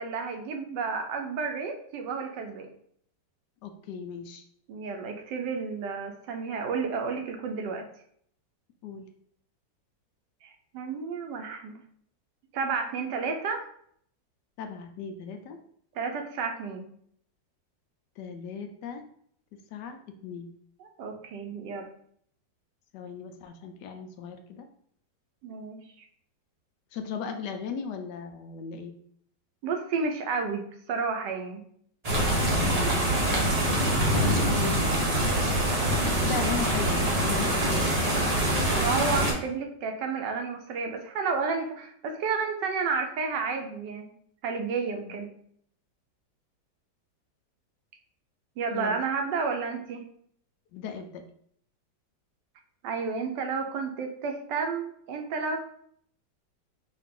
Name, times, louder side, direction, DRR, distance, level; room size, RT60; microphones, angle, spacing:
voice 1, 0.0-2.7 4.7-7.8 10.4-11.8 12.5-13.6 15.9-16.9 20.8-21.9 25.4-25.8 29.6-31.6 36.3-36.4 38.5-44.1 44.4-45.3 48.6-50.1 52.8-55.6, right 5 dB, 75° right, 4 dB, 1.3 m, -31 dB
voice 2, 3.6-4.4 8.8-9.0 14.6-15.6 18.2-19.0 19.7-20.5 22.9-24.7 26.9-28.9 32.6-33.2 34.1-35.4 35.8-38.0 45.0-45.1 48.7-49.0 50.7-51.2, left 6 dB, 75° left, 6 dB, 1.1 m, -37 dB
sound 1, 32.0-39.3, right 1 dB, 35° right, 0.6 m, -24 dB
4.8 x 2.4 x 3.6 m, 0.65 s
omnidirectional pair, 1.9 m